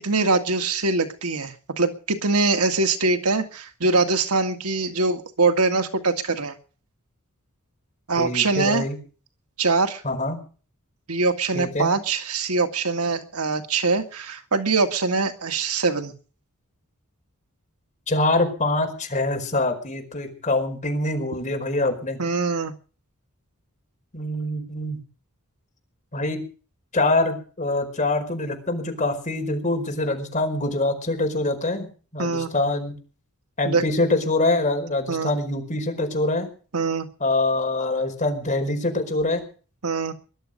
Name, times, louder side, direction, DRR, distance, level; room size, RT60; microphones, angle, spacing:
voice 1, 0.0-6.5 8.1-8.9 9.6-10.0 11.1-16.1 22.2-22.7 32.2-32.5 33.6-33.8 35.1-35.3 36.7-37.1 39.8-40.1, right 3 dB, 85° right, 7 dB, 1.9 m, -23 dB
voice 2, 8.2-9.0 10.0-10.4 11.5-11.9 18.1-22.2 24.1-25.0 26.1-26.4 26.9-31.9 32.1-32.9 33.6-36.5 37.2-39.4, left 2 dB, 35° left, 4 dB, 4.8 m, -24 dB
21.0 x 12.0 x 5.3 m, 0.39 s
head